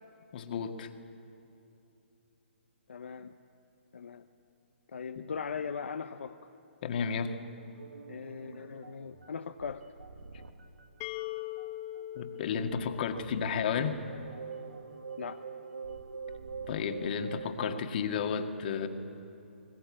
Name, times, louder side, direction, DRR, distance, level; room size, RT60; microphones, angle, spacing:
voice 1, 0.3-0.9 6.8-7.4 12.2-14.0 16.7-18.9, left 6 dB, 50° left, 6 dB, 1.8 m, -32 dB
voice 2, 2.9-3.3 3.9-4.2 4.9-6.4 8.1-9.8 15.2-15.4, left 6 dB, 70° left, 7 dB, 0.8 m, -39 dB
sound 1, 7.7-10.9 11.2-11.7 11.9-17.8, right 5 dB, 85° right, 1.7 m, -45 dB
sound 2, 11.0-14.7, left 15 dB, 30° left, 0.6 m, -42 dB
20.5 x 19.5 x 8.7 m, 2.9 s
figure-of-eight pair, 135°, 7 cm